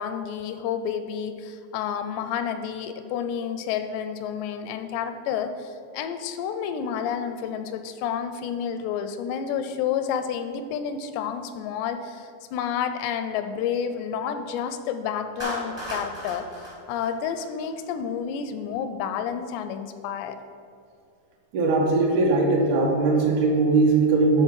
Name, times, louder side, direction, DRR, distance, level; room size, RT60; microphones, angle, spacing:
voice 1, 0.0-16.5 16.9-20.4, left 8 dB, 85° left, 9 dB, 2.6 m, -30 dB
Clapping, 15.4-17.8, equal, 25° right, 0.5 m, -36 dB
voice 2, 21.5-24.4, right 3 dB, 75° right, -3 dB, 1.8 m, -20 dB
10.5 x 4.0 x 6.3 m, 2.4 s
omnidirectional pair, 5.1 m